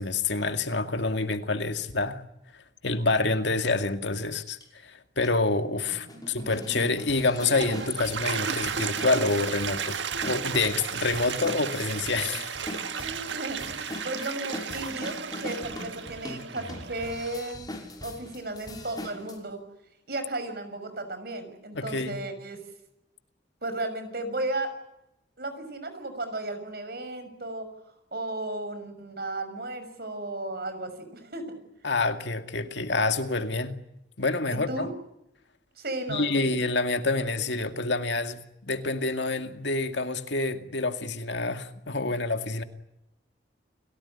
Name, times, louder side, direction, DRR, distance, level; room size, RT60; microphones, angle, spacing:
voice 1, 0.0-2.2 2.8-10.0 10.2-12.7 21.7-22.2 31.8-33.8 34.2-34.9 36.1-42.6, left 3 dB, 75° left, 2.2 m, -27 dB
sound 1, 4.6-4.7 5.2-5.3 5.9-19.4, left 1 dB, 20° left, 5.7 m, -41 dB
voice 2, 6.1-6.6 13.0-17.8 18.0-19.6 20.1-22.6 23.6-24.7 25.4-27.7 28.1-31.4 34.5-34.9 35.8-36.6, right 2 dB, 55° right, 6.3 m, -35 dB
Toilet flush, 7.2-17.5, right 6 dB, 80° right, 1.6 m, -34 dB
30.0 x 17.5 x 10.0 m
head